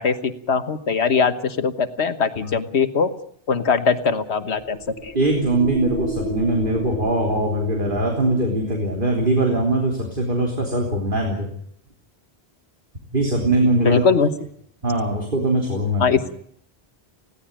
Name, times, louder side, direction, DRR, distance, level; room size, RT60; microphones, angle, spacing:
voice 1, 0.0-3.1 3.5-5.1 13.8-14.3 16.0-16.2, left 5 dB, 90° left, 11 dB, 1.6 m, -21 dB
sound 1, 4.2-8.9, right 1 dB, 75° right, 7.8 m, -32 dB
voice 2, 5.1-11.5 13.1-14.0 14.8-16.2, right 2 dB, 55° right, 1 dB, 3.8 m, -21 dB
20.5 x 17.0 x 8.9 m, 0.64 s
omnidirectional pair, 1.1 m